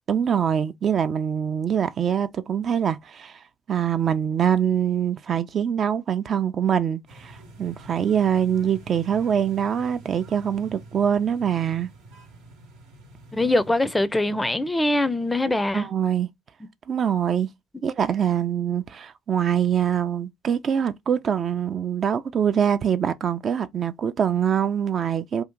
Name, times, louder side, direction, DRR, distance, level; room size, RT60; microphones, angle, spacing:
voice 1, 0.1-3.4 3.7-11.9 15.7-16.3 16.9-17.5 17.8-25.4, right 8 dB, 50° right, 0.4 m, -24 dB
sound 1, 7.1-14.1, right 2 dB, 70° right, 0.9 m, -47 dB
voice 2, 13.3-15.9 16.6-16.7, left 1 dB, 15° left, 0.4 m, -23 dB
2.8 x 2.4 x 3.5 m
hypercardioid pair, 60°, 0 cm